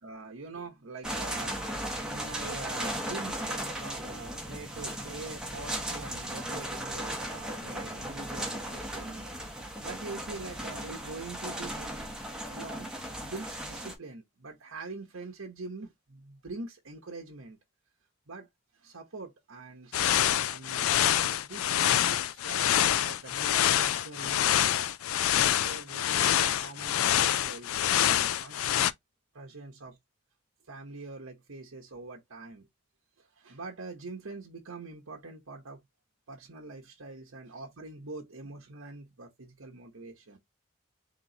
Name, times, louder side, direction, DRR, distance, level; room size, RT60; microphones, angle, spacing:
voice 1, 0.0-1.6 2.1-12.0 12.5-17.6 18.3-18.5 18.7-24.9 25.3-28.9 29.3-30.0 30.7-32.7 33.2-35.8 36.3-40.4, right 3 dB, 80° right, 1.0 m, -44 dB
sound 1, 1.0-13.9, right 1 dB, 5° right, 0.9 m, -36 dB
sound 2, 19.9-28.9, left 11 dB, 85° left, 0.4 m, -26 dB
3.7 x 3.0 x 3.8 m
head